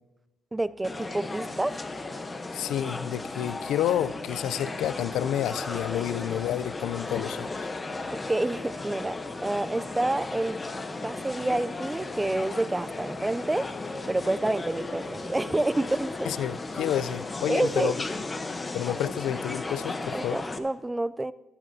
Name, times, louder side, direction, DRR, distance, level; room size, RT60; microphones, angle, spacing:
voice 1, 0.5-1.9 8.1-10.6 11.0-13.7 14.1-16.3 17.5-17.9 20.1-21.3, right 2 dB, 15° right, 0.3 m, -28 dB
sound 1, 0.8-20.6, left 3 dB, 25° left, 0.9 m, -35 dB
voice 2, 2.5-7.5 16.3-17.9 18.7-20.4, left 11 dB, 85° left, 0.3 m, -29 dB
15.0 x 13.5 x 2.7 m
cardioid pair, 90°, 0 cm